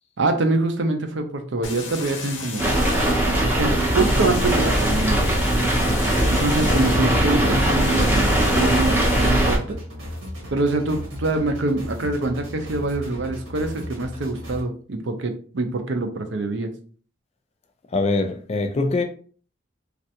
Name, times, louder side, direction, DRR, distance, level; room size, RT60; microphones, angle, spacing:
voice 1, 0.2-2.6 3.4-5.4 6.3-9.8 10.5-16.7, right 2 dB, 65° right, 0.5 m, -25 dB
sound 1, 1.6-9.3, left 5 dB, 75° left, 0.7 m, -36 dB
sound 2, 2.6-9.6, right 1 dB, 10° right, 0.6 m, -20 dB
sound 3, 8.1-14.6, equal, 90° right, 1.3 m, -36 dB
voice 2, 17.9-19.0, left 3 dB, 30° left, 0.3 m, -23 dB
3.2 x 2.5 x 2.8 m
head